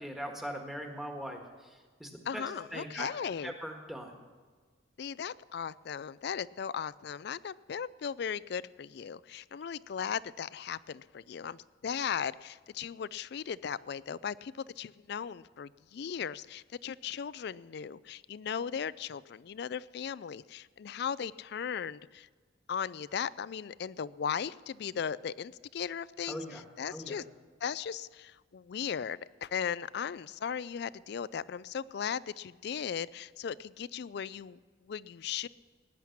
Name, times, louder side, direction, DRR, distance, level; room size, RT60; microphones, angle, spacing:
voice 1, 0.0-2.4 2.7-3.1 3.4-4.2 26.3-26.6 26.9-27.2, equal, ahead, 2 dB, 1.5 m, -41 dB
voice 2, 2.3-3.5 5.0-22.3 22.7-27.2 27.6-34.6 34.9-35.5, left 7 dB, 60° left, 19 dB, 0.4 m, -37 dB
18.0 x 10.0 x 5.9 m, 1.5 s
head